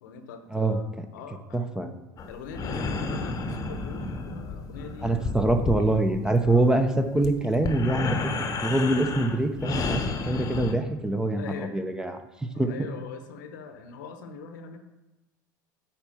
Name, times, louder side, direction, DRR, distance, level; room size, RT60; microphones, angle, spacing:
voice 1, 0.0-1.6 2.3-5.4 6.4-6.6 11.4-11.8 12.5-14.8, left 5 dB, 70° left, 8 dB, 0.9 m, -42 dB
voice 2, 1.5-1.9 5.0-8.2 8.6-11.4 11.7-12.7, right 2 dB, 5° right, 7 dB, 0.8 m, -24 dB
sound 1, 2.2-10.7, left 4 dB, 35° left, 1.0 m, -32 dB
8.9 x 4.5 x 5.5 m, 1.0 s
hypercardioid pair, 80°, 11 cm